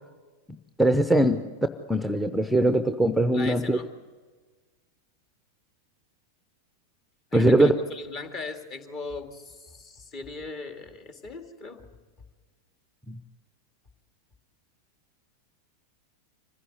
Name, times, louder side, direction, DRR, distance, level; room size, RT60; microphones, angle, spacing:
voice 1, 0.8-1.4 1.9-3.8 7.3-7.7 13.1-13.2, right 1 dB, ahead, 11 dB, 0.7 m, -21 dB
voice 2, 3.3-3.9 7.3-11.9, left 3 dB, 35° left, 6 dB, 2.1 m, -39 dB
25.0 x 15.5 x 8.0 m, 1.4 s
figure-of-eight pair, 90°, 0 cm